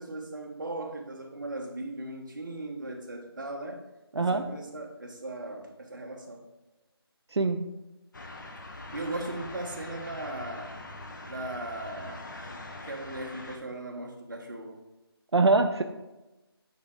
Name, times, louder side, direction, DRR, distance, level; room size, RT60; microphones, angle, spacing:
voice 1, 0.0-3.9 4.1-6.5 8.9-10.8 11.2-12.3 12.5-14.8, right 2 dB, 50° right, 1 dB, 1.2 m, -38 dB
voice 2, 4.2-4.5 7.3-7.6 15.3-15.8, right 3 dB, 90° right, 7 dB, 0.6 m, -23 dB
sound 1, 8.1-13.6, left 2 dB, 50° left, 1.0 m, -43 dB
9.6 x 3.6 x 4.8 m, 1.0 s
figure-of-eight pair, 170°, 13 cm